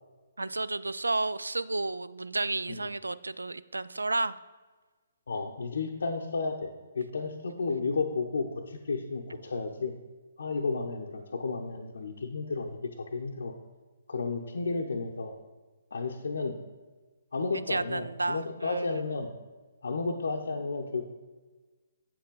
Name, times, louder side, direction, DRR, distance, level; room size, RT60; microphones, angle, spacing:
voice 1, 0.4-4.3 17.7-19.0, right 2 dB, 80° right, 17 dB, 0.3 m, -32 dB
voice 2, 5.3-9.9 10.4-12.8 13.1-13.5 14.1-15.3 15.9-16.6 17.3-19.3 19.8-21.1, left 4 dB, 65° left, 1 dB, 0.7 m, -32 dB
8.5 x 7.5 x 3.9 m, 1.3 s
figure-of-eight pair, 130°, 0 cm